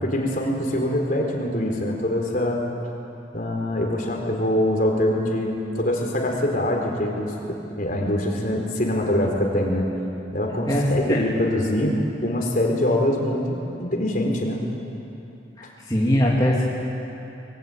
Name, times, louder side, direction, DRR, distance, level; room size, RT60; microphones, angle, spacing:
voice 1, 0.0-2.6 3.3-9.9 10.3-14.6, left 1 dB, 45° left, 1 dB, 4.0 m, -24 dB
voice 2, 10.7-11.2 15.6-16.6, left 1 dB, 20° left, -5 dB, 2.9 m, -21 dB
25.0 x 23.0 x 9.1 m, 2.9 s
head